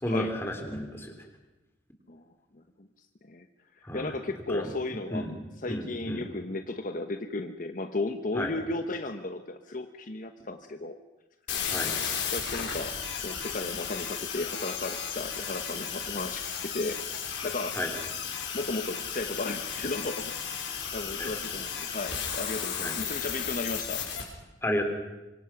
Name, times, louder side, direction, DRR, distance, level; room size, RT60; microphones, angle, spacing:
voice 1, 0.0-1.1 3.8-4.1 4.5-4.7 5.1-5.3 5.7-6.2 8.4-8.5 11.7-11.9 17.8-17.9 21.2-21.3 22.8-23.0 24.6-24.8, left 1 dB, 15° left, 4 dB, 3.6 m, -32 dB
voice 2, 2.5-3.5 3.7-5.3 5.6-11.0 12.3-12.9 13.2-17.8 18.5-20.3 20.9-24.0, left 2 dB, 45° left, 7 dB, 1.1 m, -35 dB
sound 1, 11.5-24.2, left 7 dB, 80° left, 5.3 m, -34 dB
25.5 x 24.5 x 6.0 m, 1.1 s
head